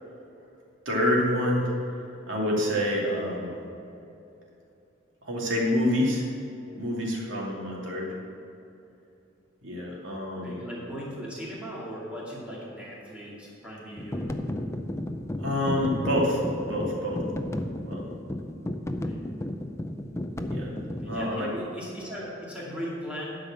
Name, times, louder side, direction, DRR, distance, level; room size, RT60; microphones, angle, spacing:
voice 1, 0.8-3.6 5.2-6.3 6.7-8.2 9.6-10.6 15.4-17.3 17.8-18.1 20.5-20.8 21.1-21.5, left 1 dB, 70° right, -3 dB, 2.6 m, -27 dB
voice 2, 10.3-14.3 19.0-19.3 21.0-23.4, equal, 5° right, -7 dB, 2.4 m, -38 dB
sound 1, 14.0-21.3, left 1 dB, 15° left, 0.5 m, -33 dB
12.0 x 5.2 x 7.5 m, 2.8 s
head